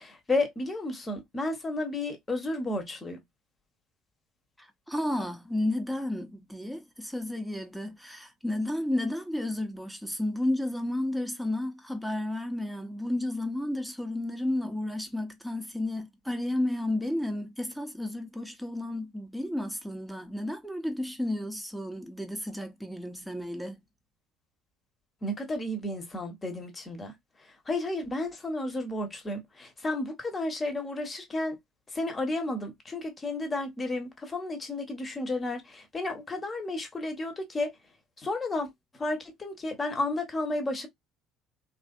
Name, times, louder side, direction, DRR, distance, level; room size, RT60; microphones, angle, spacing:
voice 1, 0.0-3.2 25.2-27.1 27.7-31.6 31.9-37.7 38.2-38.7 39.0-40.9, left 2 dB, 25° left, 1.1 m, -32 dB
voice 2, 4.6-23.8, left 1 dB, ahead, 0.9 m, -32 dB
3.3 x 2.6 x 2.4 m
figure-of-eight pair, 60°, 0 cm